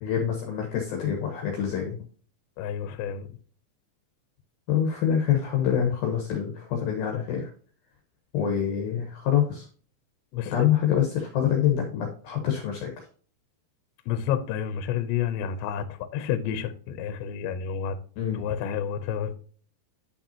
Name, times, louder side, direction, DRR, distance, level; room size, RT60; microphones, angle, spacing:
voice 1, 0.0-2.0 4.7-7.5 8.3-9.7 10.5-13.1 18.2-18.5, left 9 dB, 65° left, 2.7 m, -26 dB
voice 2, 2.6-3.4 10.3-10.7 14.1-18.0 18.3-19.4, left 8 dB, 80° left, 2.9 m, -30 dB
10.5 x 5.7 x 2.8 m
omnidirectional pair, 5.2 m